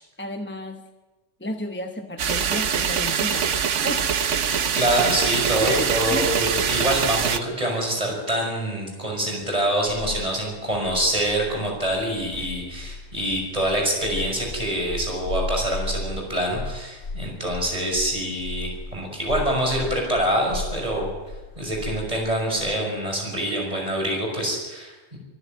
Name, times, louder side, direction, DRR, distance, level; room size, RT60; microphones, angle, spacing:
voice 1, 0.2-0.8 1.4-3.5 3.8-4.1 5.6-6.3, left 1 dB, 10° left, 5 dB, 0.9 m, -32 dB
sound 1, 2.2-7.4, right 7 dB, 90° right, 1.3 m, -23 dB
voice 2, 4.7-21.1 21.6-25.2, right 1 dB, 30° right, 0 dB, 6.0 m, -25 dB
sound 2, 9.3-22.8, left 2 dB, 75° left, 1.9 m, -36 dB
25.0 x 11.5 x 9.1 m, 1.2 s
omnidirectional pair, 1.2 m